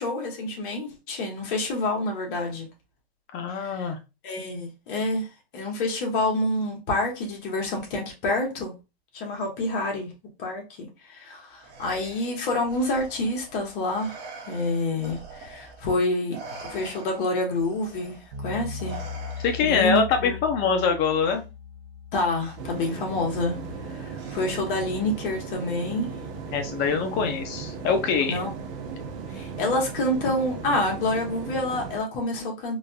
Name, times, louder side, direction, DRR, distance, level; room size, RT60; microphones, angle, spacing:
voice 1, 0.0-2.7 3.5-3.9 4.2-5.3 5.5-8.7 9.1-10.1 10.4-16.4 16.6-19.0 19.6-20.4 22.1-23.6 23.9-26.1 27.2-27.3 28.3-28.5 29.3-32.8, left 2 dB, 55° left, 1.6 m, -28 dB
voice 2, 3.3-4.0 19.4-21.4 26.5-28.4, left 6 dB, 35° left, 0.8 m, -24 dB
Respiratory sounds, 11.6-16.0 16.3-19.9 21.2-21.4 22.4-22.9 24.2-24.8, right 3 dB, 35° right, 1.2 m, -44 dB
sound 1, 18.3-29.2, left 6 dB, 80° right, 1.3 m, -41 dB
sound 2, 22.6-32.0, right 5 dB, 60° right, 1.0 m, -37 dB
4.0 x 2.6 x 2.4 m
hypercardioid pair, 130°, 31 cm